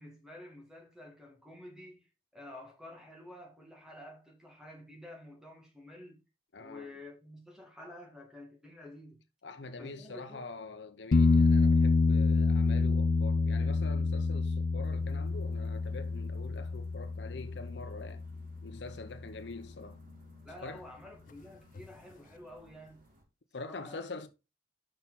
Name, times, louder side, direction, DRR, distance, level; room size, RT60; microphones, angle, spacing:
voice 1, 0.0-6.2 6.6-9.2 9.7-10.5 20.4-23.1 23.6-24.1, left 1 dB, 5° right, 2.0 m, -50 dB
voice 2, 6.5-6.9 9.4-18.2 18.6-20.0 20.6-20.8 23.5-24.3, left 3 dB, 85° left, 0.8 m, -44 dB
sound 1, 11.1-18.7 21.8-21.9, left 4 dB, 45° left, 0.3 m, -27 dB
sound 2, 14.8-23.2, right 1 dB, 50° right, 2.1 m, -62 dB
6.6 x 5.7 x 4.1 m
head